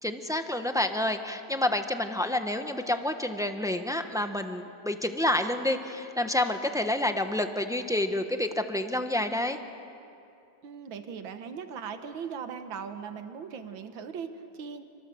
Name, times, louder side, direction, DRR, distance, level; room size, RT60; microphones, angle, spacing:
voice 1, 0.0-9.6, left 1 dB, 5° right, 7 dB, 0.7 m, -29 dB
voice 2, 10.6-14.8, right 6 dB, 85° right, 8 dB, 2.0 m, -39 dB
28.0 x 25.0 x 7.8 m, 2.7 s
omnidirectional pair, 2.1 m